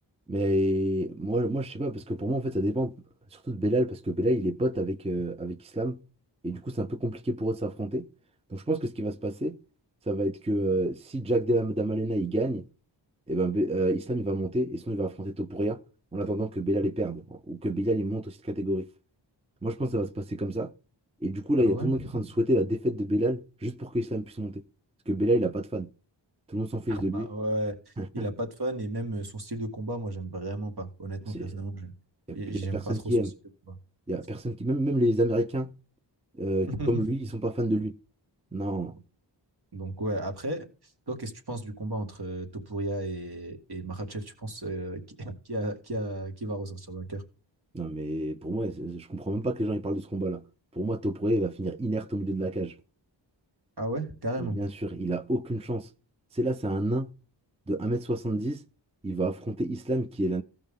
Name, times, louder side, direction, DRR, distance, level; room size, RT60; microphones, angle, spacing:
voice 1, 0.3-2.9 3.3-6.0 6.4-8.1 8.5-9.6 10.1-12.7 13.3-15.8 16.1-18.9 19.6-20.7 21.2-24.6 25.1-25.9 26.5-27.3 28.0-28.3 31.3-31.5 32.3-33.3 34.1-35.7 36.4-38.0 38.5-39.0 47.7-50.4 50.7-52.8 54.4-55.9 56.3-57.1 57.7-58.6 59.0-60.4, right 1 dB, 15° right, 0.5 m, -28 dB
voice 2, 26.9-31.9 32.3-33.1 36.7-37.0 39.7-40.7 41.1-47.2 53.8-54.6, right 1 dB, 60° right, 2.0 m, -34 dB
15.5 x 5.6 x 3.6 m
wide cardioid pair, 65°, 44 cm